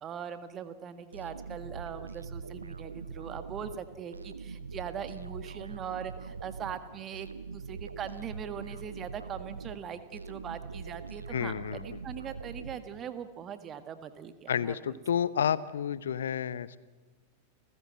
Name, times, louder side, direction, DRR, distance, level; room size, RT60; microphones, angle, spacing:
voice 1, 0.0-7.3 7.5-15.0, right 8 dB, 30° right, 10 dB, 1.7 m, -41 dB
sound 1, 1.1-13.3, right 5 dB, 75° right, 0.8 m, -43 dB
voice 2, 11.3-12.0 14.5-16.8, left 8 dB, 65° left, 18 dB, 0.8 m, -30 dB
30.0 x 15.0 x 7.7 m, 1.2 s
figure-of-eight pair, 90°, 0 cm